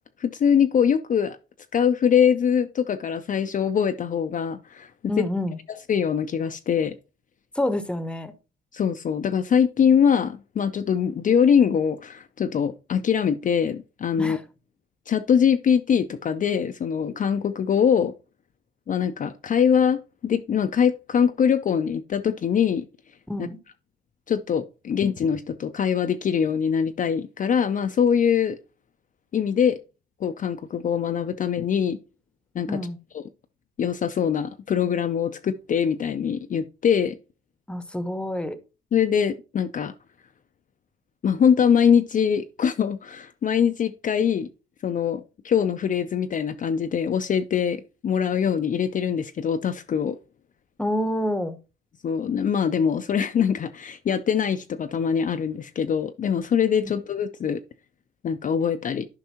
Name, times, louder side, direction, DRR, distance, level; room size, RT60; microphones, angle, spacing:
voice 1, 0.2-1.4 1.7-5.3 5.9-6.9 8.7-14.4 15.1-18.1 18.9-22.8 24.3-28.6 29.3-29.8 30.2-32.0 32.5-32.8 33.1-33.2 33.8-37.2 38.9-39.9 41.2-44.5 44.8-50.2 52.0-57.6 58.2-59.1, left 7 dB, 40° left, 0.5 m, -23 dB
voice 2, 5.1-5.6 7.5-8.3 14.2-14.4 23.3-23.6 32.7-33.0 37.7-38.6 50.8-51.5, left 1 dB, 5° left, 0.9 m, -27 dB
10.5 x 5.3 x 2.9 m
cardioid pair, 90°, 20 cm